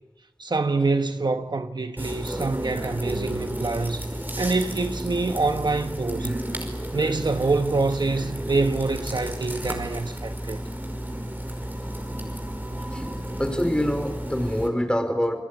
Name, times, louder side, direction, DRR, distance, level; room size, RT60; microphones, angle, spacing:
voice 1, 0.4-4.1 4.4-6.4 6.9-10.6, right 3 dB, 80° right, 1.2 m, -25 dB
sound 1, 2.0-14.7, right 1 dB, 25° right, 5.5 m, -32 dB
voice 2, 13.4-15.4, equal, 10° left, 4.8 m, -25 dB
29.0 x 21.0 x 9.8 m
wide cardioid pair, 50°, 8 cm